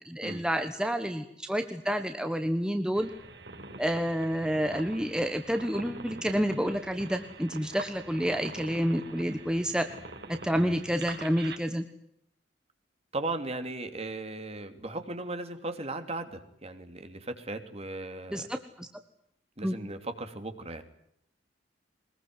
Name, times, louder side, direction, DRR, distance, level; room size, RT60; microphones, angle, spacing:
voice 1, 0.0-3.1 3.8-9.9 10.3-11.8 18.3-18.9 19.6-19.8, equal, 5° right, 7 dB, 1.2 m, -29 dB
sound 1, 2.9-11.6, right 3 dB, 65° right, 5.1 m, -44 dB
voice 2, 13.1-18.5 19.6-20.8, right 2 dB, 35° right, 7 dB, 2.9 m, -37 dB
22.5 x 21.0 x 9.6 m, 0.74 s
head